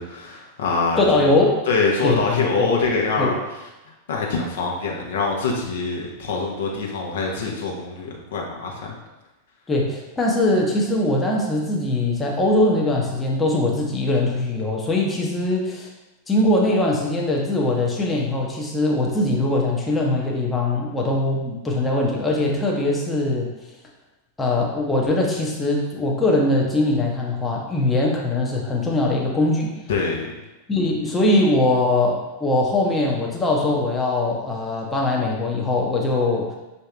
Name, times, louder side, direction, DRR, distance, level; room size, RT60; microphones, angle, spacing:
voice 1, 0.0-1.4 1.7-3.4 4.1-8.9 29.9-30.3, left 4 dB, 60° left, -1 dB, 0.8 m, -24 dB
voice 2, 1.0-1.6 2.0-2.2 2.6-2.7 3.2-3.4 9.7-15.9 16.3-23.5 24.4-29.7 30.7-36.5, left 2 dB, 15° left, -2 dB, 0.8 m, -21 dB
5.5 x 2.8 x 3.3 m, 1.0 s
figure-of-eight pair, 90°, 0 cm